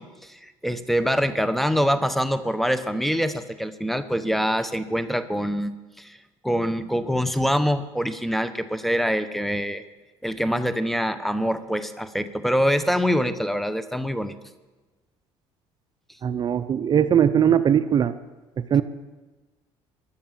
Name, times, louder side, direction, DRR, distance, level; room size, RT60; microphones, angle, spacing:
voice 1, 0.0-6.2 6.4-9.8 10.2-14.3, equal, ahead, 12 dB, 0.9 m, -25 dB
voice 2, 16.2-18.1 18.7-18.8, right 9 dB, 40° right, 13 dB, 0.6 m, -20 dB
15.5 x 11.0 x 7.3 m, 1.2 s
cardioid pair, 110°, 11 cm